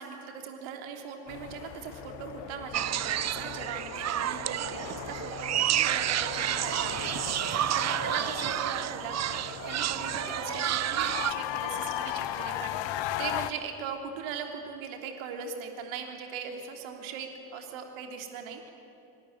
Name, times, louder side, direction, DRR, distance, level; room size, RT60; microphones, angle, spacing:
voice 1, 0.0-7.5 7.7-18.7, right 6 dB, 65° right, 4 dB, 3.4 m, -40 dB
sound 1, 1.3-13.5, left 12 dB, 60° left, 1.3 m, -37 dB
sound 2, 2.7-11.3, right 12 dB, 35° right, 0.6 m, -30 dB
25.5 x 24.5 x 9.2 m, 2.8 s
figure-of-eight pair, 45°, 50 cm